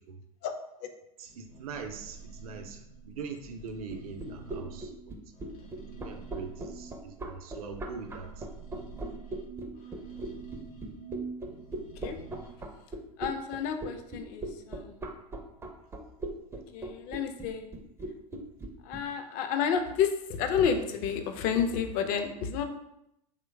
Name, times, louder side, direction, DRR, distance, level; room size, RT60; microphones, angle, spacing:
sound 1, 1.2-7.3 7.7-12.5, right 5 dB, 65° left, 0.9 m, -46 dB
voice 1, 1.2-5.1 5.7-8.3, right 5 dB, 70° right, 6 dB, 0.5 m, -42 dB
sound 2, 3.9-19.0, right 2 dB, 15° right, 0.4 m, -38 dB
voice 2, 11.7-12.2 13.2-15.1 16.5-17.7 18.8-22.6, left 7 dB, 45° left, 7 dB, 0.4 m, -30 dB
3.0 x 2.2 x 3.3 m, 0.82 s
hypercardioid pair, 85°, 19 cm